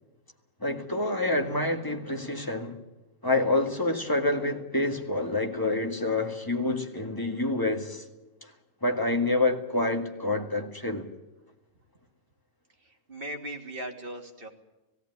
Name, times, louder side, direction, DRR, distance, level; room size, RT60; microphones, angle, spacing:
voice 1, 0.6-2.8 3.2-8.0 8.4-8.5 8.8-11.1, left 2 dB, 15° left, 1.9 m, -27 dB
voice 2, 13.1-14.5, right 1 dB, 45° right, 2.8 m, -38 dB
17.5 x 17.0 x 9.5 m
omnidirectional pair, 1.4 m